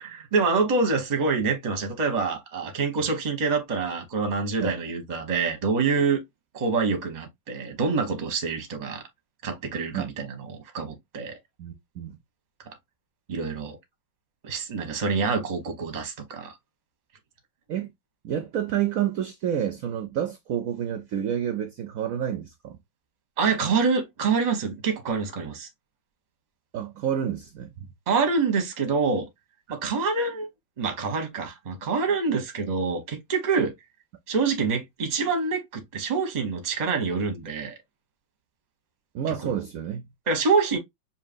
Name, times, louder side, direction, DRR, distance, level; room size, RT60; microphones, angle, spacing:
voice 1, 0.0-6.2 6.5-9.0 9.4-11.4 13.3-13.8 14.4-16.5 23.4-25.7 28.1-29.3 29.7-30.5 30.8-33.7 34.3-37.8 40.3-40.8, right 4 dB, 35° right, 0.8 m, -26 dB
voice 2, 11.6-12.2 17.7-17.9 18.2-22.8 26.7-27.9 39.1-40.1, right 9 dB, 70° right, 0.8 m, -29 dB
5.5 x 2.9 x 2.5 m
omnidirectional pair, 2.1 m